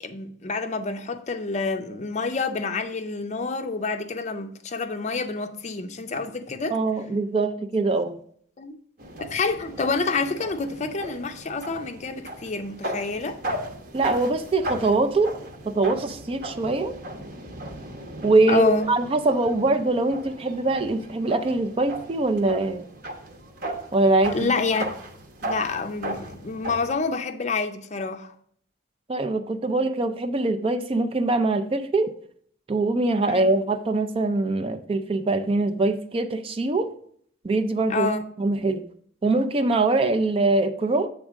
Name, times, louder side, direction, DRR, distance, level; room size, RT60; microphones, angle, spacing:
voice 1, 0.0-6.7 8.6-8.8 9.3-13.4 18.5-18.9 24.3-24.8 25.4-28.3 33.3-33.4 37.9-38.2, left 3 dB, 40° left, 0.5 m, -28 dB
voice 2, 6.7-8.2 13.9-15.3 15.7-16.9 18.2-22.8 23.9-24.5 29.1-32.1 32.7-36.9 37.4-38.1 38.4-38.9 39.2-41.1, right 2 dB, 30° right, 0.4 m, -23 dB
sound 1, 9.0-26.9, right 1 dB, 50° right, 0.9 m, -36 dB
7.5 x 3.6 x 5.0 m
head